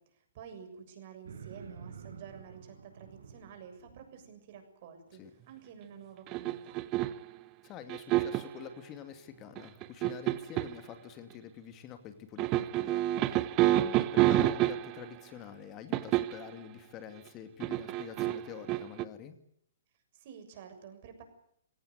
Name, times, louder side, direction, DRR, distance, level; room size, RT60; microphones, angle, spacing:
voice 1, 0.0-6.8 20.1-21.2, right 7 dB, 45° right, 7 dB, 7.0 m, -50 dB
sound 1, 1.2-4.3, right 6 dB, 70° right, 5.7 m, -49 dB
sound 2, 6.3-7.3 7.9-8.6 9.6-10.8 12.4-15.1 15.9-16.5 17.6-19.0, right 15 dB, 30° right, 1.0 m, -28 dB
voice 2, 7.6-19.4, left 9 dB, 30° left, 8 dB, 2.5 m, -47 dB
23.0 x 18.0 x 9.4 m, 0.69 s
figure-of-eight pair, 120°, 0 cm